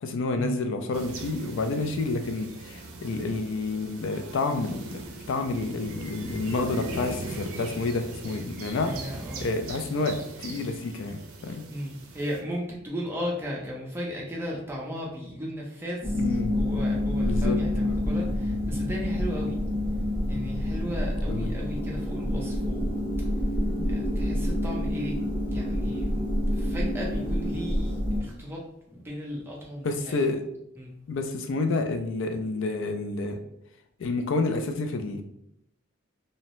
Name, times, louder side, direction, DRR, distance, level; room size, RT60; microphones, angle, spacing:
voice 1, 0.0-8.9 9.4-11.6 16.2-16.6 17.2-17.6 17.8-18.0 21.3-21.5 23.8-23.9 29.8-30.4 31.1-33.4 34.0-35.2, left 3 dB, 60° left, 6 dB, 0.3 m, -29 dB
sound 1, 0.9-12.4, right 2 dB, 75° right, 0.5 m, -40 dB
voice 2, 8.8-9.4 11.7-19.6 20.3-23.3 23.8-25.2 25.5-26.1 26.5-30.2 30.8-30.9, equal, 10° right, -3 dB, 0.5 m, -36 dB
sound 2, 16.0-28.2, left 1 dB, 30° left, 0.8 m, -27 dB
2.7 x 2.0 x 2.9 m, 0.78 s
head